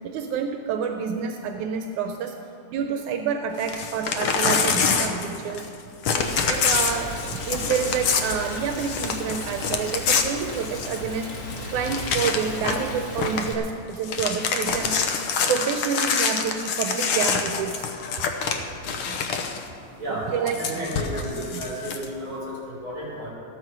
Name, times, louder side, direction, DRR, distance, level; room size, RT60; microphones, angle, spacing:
voice 1, 0.0-2.3 2.7-5.7 6.5-7.1 7.5-11.3 11.7-15.1 15.5-17.9 20.1-20.6 21.5-21.6, right 7 dB, 85° right, 4 dB, 2.2 m, -28 dB
Crumpling crinkling / Tearing, 3.6-5.8 6.0-11.1 11.5-11.6 11.8-12.9 13.2-13.5 13.9-19.7 20.5-22.1, left 6 dB, 65° left, 1.5 m, -26 dB
Rain, 6.2-13.5, left 1 dB, 40° left, 1.2 m, -35 dB
voice 2, 18.8-19.1 20.0-20.3 20.6-23.3, right 1 dB, 40° right, -5 dB, 4.8 m, -33 dB
15.0 x 13.5 x 4.6 m, 2.5 s
omnidirectional pair, 3.4 m